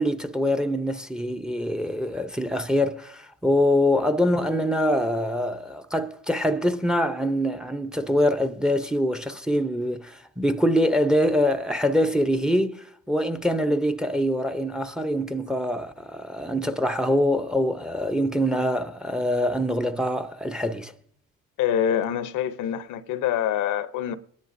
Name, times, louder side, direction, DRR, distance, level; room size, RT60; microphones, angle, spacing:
voice 1, 0.0-20.9, equal, ahead, 0.7 m, -24 dB
voice 2, 21.6-24.1, left 9 dB, 85° left, 0.8 m, -25 dB
22.0 x 10.5 x 2.6 m
cardioid pair, 90°, 30 cm